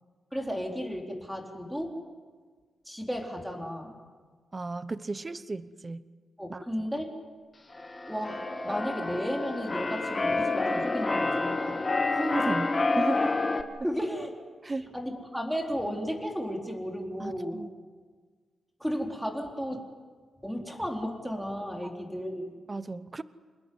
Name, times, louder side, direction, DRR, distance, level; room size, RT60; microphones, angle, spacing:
voice 1, 0.3-1.9 2.8-4.0 6.4-7.1 8.1-11.9 13.8-14.3 14.6-17.6 18.8-19.8 20.4-22.5, equal, ahead, 1 dB, 4.2 m, -34 dB
voice 2, 4.5-6.1 6.5-6.6 12.1-13.3 14.6-14.9 17.2-17.7 22.7-23.2, right 3 dB, 25° right, 14 dB, 0.9 m, -34 dB
Keyboard (musical), 7.7-13.6, left 3 dB, 25° left, 1.7 m, -28 dB
28.5 x 20.0 x 9.6 m, 1.5 s
wide cardioid pair, 125°, 0 cm